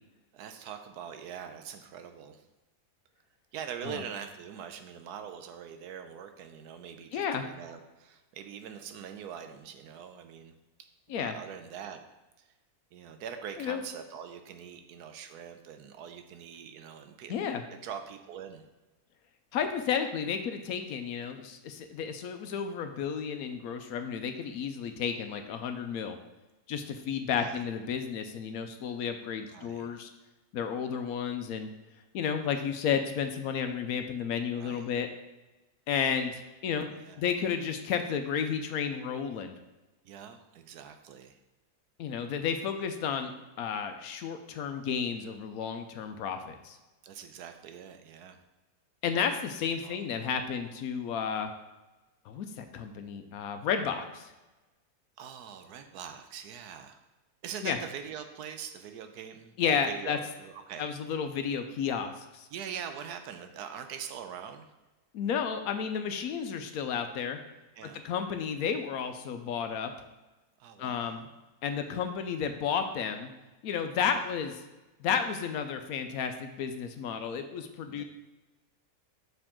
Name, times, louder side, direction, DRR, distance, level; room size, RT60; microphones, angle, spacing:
voice 1, 0.3-2.4 3.5-10.6 11.1-12.0 12.4-12.5 12.9-17.3 17.7-18.6 27.4-27.6 29.5-29.9 34.5-34.9 36.9-37.3 40.0-41.4 43.2-43.4 47.0-48.4 49.8-50.0 55.2-57.0 57.4-60.9 62.5-64.7 67.7-68.0 70.6-71.2 73.9-74.2 77.9-78.0, right 8 dB, 85° right, 8 dB, 1.2 m, -43 dB
voice 2, 7.1-7.4 11.1-11.3 13.6-13.8 17.3-17.6 19.5-26.2 26.7-30.1 30.5-31.7 32.1-35.1 35.9-39.5 42.0-43.3 43.6-46.8 49.0-51.5 52.3-54.3 57.6-57.8 59.6-60.2 60.8-62.5 65.1-67.4 68.0-69.9 70.8-71.3 71.6-73.3 73.6-74.6 75.0-78.0, left 7 dB, 70° left, 7 dB, 1.0 m, -32 dB
6.4 x 4.8 x 3.6 m, 1.1 s
omnidirectional pair, 1.6 m